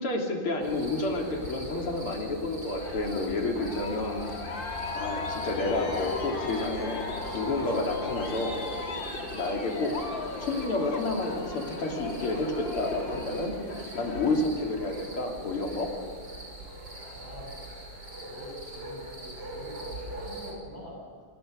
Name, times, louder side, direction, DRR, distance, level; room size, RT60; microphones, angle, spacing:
voice 1, 0.0-4.2 4.9-7.1 7.3-8.6 9.3-9.9 10.4-13.5 13.9-15.9, left 2 dB, 85° left, 1 dB, 3.9 m, -30 dB
sound 1, 0.6-20.5, right 1 dB, 50° right, 6.6 m, -41 dB
Aircraft, 2.8-14.4, left 3 dB, 60° left, 3.1 m, -37 dB
voice 2, 16.8-17.6 18.3-21.3, equal, 20° left, -2 dB, 8.3 m, -45 dB
27.0 x 18.0 x 6.6 m, 2.1 s
omnidirectional pair, 2.3 m